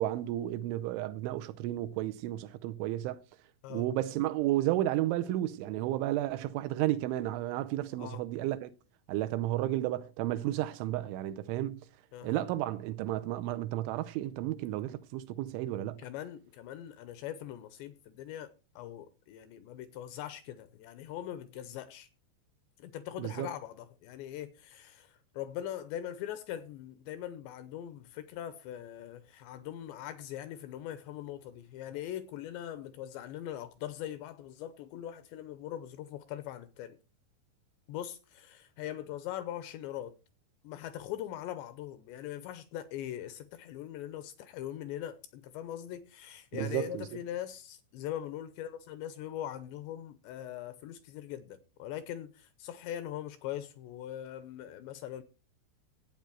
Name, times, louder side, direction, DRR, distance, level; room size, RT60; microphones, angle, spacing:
voice 1, 0.0-3.2 3.7-8.7 9.1-11.8 12.2-16.0 23.2-23.5 46.5-47.1, right 14 dB, 80° right, 3.0 m, -32 dB
voice 2, 12.1-12.4 16.0-22.1 22.8-37.0 37.9-40.1 40.6-55.2, left 11 dB, 80° left, 2.7 m, -41 dB
15.0 x 8.9 x 4.6 m
omnidirectional pair, 5.7 m